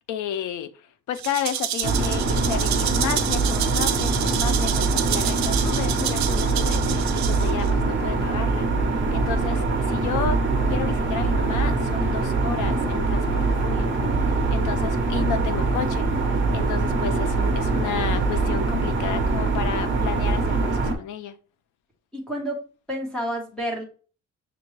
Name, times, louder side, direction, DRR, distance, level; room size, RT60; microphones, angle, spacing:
voice 1, 0.1-0.7 1.1-10.4 10.7-16.1 16.5-21.4, left 8 dB, 75° left, 0.6 m, -32 dB
Rattle (instrument), 1.2-7.7, right 11 dB, 65° right, 0.5 m, -29 dB
sound 1, 1.8-21.0, right 3 dB, 40° right, 0.8 m, -23 dB
voice 2, 16.7-17.0 22.1-22.6 22.9-23.8, equal, 5° left, 1.0 m, -31 dB
6.0 x 2.2 x 3.1 m
cardioid pair, 175°, 30 cm